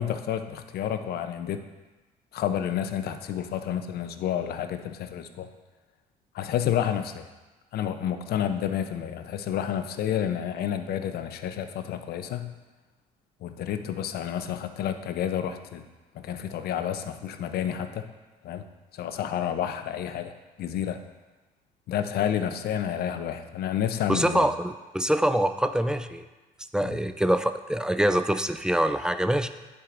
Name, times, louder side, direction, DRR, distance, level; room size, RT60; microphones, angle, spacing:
voice 1, 0.0-1.6 2.3-5.5 6.3-7.3 7.7-12.5 13.4-15.8 16.1-18.1 18.4-18.6 18.9-20.3 20.6-21.0 21.9-24.5 26.8-27.0, left 9 dB, 65° left, 9 dB, 0.6 m, -30 dB
voice 2, 24.1-26.3 26.7-29.5, right 1 dB, 5° right, 10 dB, 0.4 m, -25 dB
10.5 x 4.7 x 2.5 m, 1.2 s
supercardioid pair, 70°, 18 cm